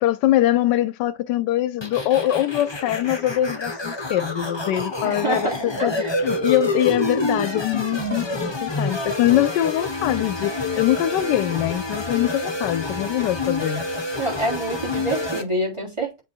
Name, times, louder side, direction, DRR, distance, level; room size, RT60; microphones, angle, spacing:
voice 1, 0.0-5.9 6.2-13.8, left 13 dB, 85° left, 1.2 m, -23 dB
sound 1, 1.8-15.4, left 2 dB, 15° left, 1.1 m, -28 dB
voice 2, 5.0-6.1 14.2-16.2, right 2 dB, 15° right, 3.7 m, -27 dB
7.4 x 3.9 x 4.5 m
omnidirectional pair, 1.8 m